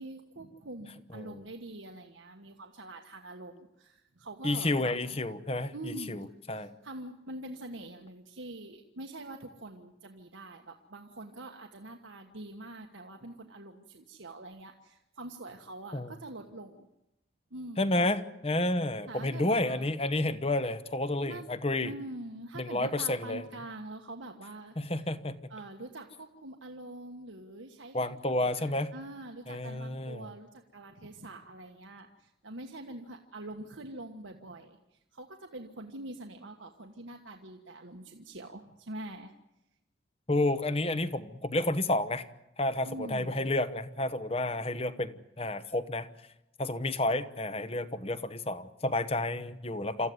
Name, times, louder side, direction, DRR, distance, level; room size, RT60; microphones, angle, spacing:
voice 1, 0.0-5.0 5.7-16.9 17.5-17.9 19.1-19.9 21.2-21.4 21.8-25.1 25.5-28.1 28.6-39.3 42.8-43.5, right 2 dB, 80° right, 3 dB, 1.5 m, -45 dB
voice 2, 4.4-6.7 15.9-16.1 17.8-21.9 22.5-23.4 24.8-25.4 27.9-28.9 29.5-30.3 40.3-42.2 42.6-46.1 46.6-50.1, left 2 dB, 30° left, 12 dB, 1.1 m, -30 dB
27.5 x 14.0 x 9.5 m, 0.90 s
head